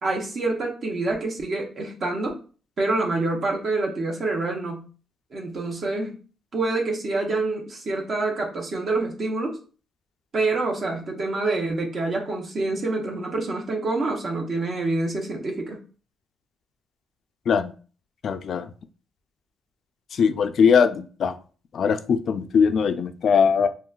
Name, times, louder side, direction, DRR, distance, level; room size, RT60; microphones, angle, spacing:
voice 1, 0.0-2.4 2.8-4.9 5.3-6.2 6.5-9.6 10.3-15.8, right 2 dB, 50° right, 0 dB, 0.7 m, -26 dB
voice 2, 18.2-18.7 20.1-21.3 21.7-23.7, left 6 dB, 60° left, 10 dB, 0.3 m, -20 dB
3.8 x 2.2 x 2.3 m, 0.38 s
cardioid pair, 90°, 0 cm